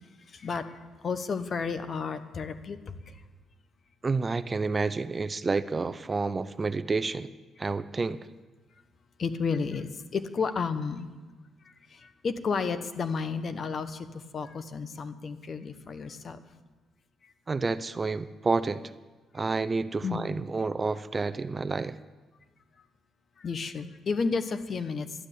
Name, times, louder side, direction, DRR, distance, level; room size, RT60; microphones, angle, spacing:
voice 1, 0.3-0.6 1.0-2.8 9.2-11.1 12.2-16.4 20.0-20.2 23.4-25.1, left 5 dB, 45° left, 10 dB, 1.1 m, -31 dB
voice 2, 4.0-7.3 7.6-8.2 17.5-18.8 19.3-22.0, right 4 dB, 30° right, 13 dB, 0.5 m, -29 dB
12.5 x 9.9 x 8.4 m, 1.3 s
cardioid pair, 90°, 0 cm